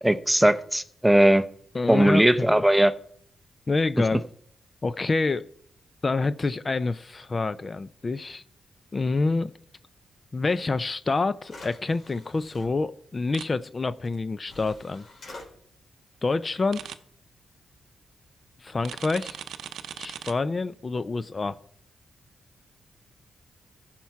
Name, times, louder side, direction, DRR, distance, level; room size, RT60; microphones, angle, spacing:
voice 1, 0.0-1.4 1.9-2.9, right 1 dB, 5° right, 11 dB, 0.6 m, -19 dB
voice 2, 1.7-2.6 3.7-4.3 4.8-5.5 6.0-8.4 8.9-9.5 10.3-15.0 16.2-16.9 18.6-19.4 20.0-21.6, left 3 dB, 35° left, 15 dB, 0.4 m, -27 dB
sound 1, 10.9-11.0 11.4-12.7 14.0-14.1 14.4-15.5, left 2 dB, 50° left, 3.8 m, -46 dB
sound 2, 13.3-13.5 16.7-17.0 18.8-20.3, right 9 dB, 85° right, 0.6 m, -38 dB
15.0 x 5.9 x 4.6 m, 0.65 s
cardioid pair, 90°, 0 cm